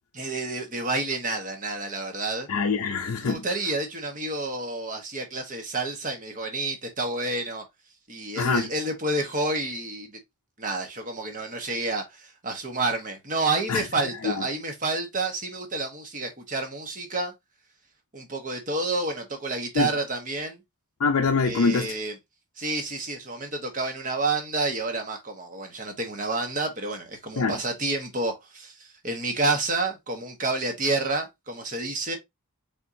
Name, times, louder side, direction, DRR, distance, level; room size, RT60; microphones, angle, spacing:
voice 1, 0.1-2.5 3.2-7.6 8.1-10.2 10.6-17.3 18.1-20.6 21.4-22.1 22.6-32.2, right 2 dB, 35° right, 1.1 m, -29 dB
voice 2, 2.5-3.4 8.4-8.7 13.7-13.8 19.8-19.9 21.0-21.9 27.4-27.6, left 4 dB, 70° left, 0.5 m, -24 dB
4.4 x 3.6 x 2.6 m
head